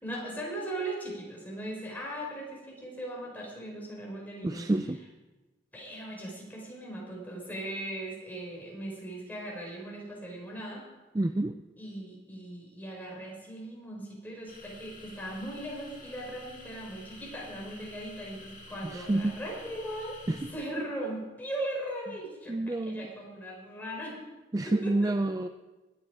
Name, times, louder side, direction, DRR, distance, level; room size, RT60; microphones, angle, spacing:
voice 1, 0.0-4.7 5.7-10.8 11.8-20.2 20.5-24.2 24.6-25.1, right 1 dB, 10° left, -2 dB, 4.7 m, -39 dB
voice 2, 4.4-5.0 11.1-11.6 18.8-19.4 20.3-20.4 22.5-23.1 24.5-25.5, right 2 dB, 20° right, 8 dB, 0.4 m, -28 dB
sound 1, 14.5-20.5, left 2 dB, 45° left, 3.0 m, -50 dB
21.0 x 8.5 x 4.9 m, 1.1 s
head